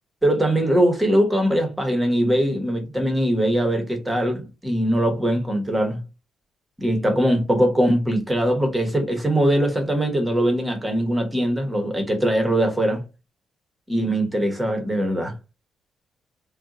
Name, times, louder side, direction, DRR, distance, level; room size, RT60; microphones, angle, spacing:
voice 1, 0.2-6.0 6.8-13.0 13.9-15.3, right 1 dB, 10° right, 1.0 m, -21 dB
2.7 x 2.2 x 3.7 m
cardioid pair, 90°, 0 cm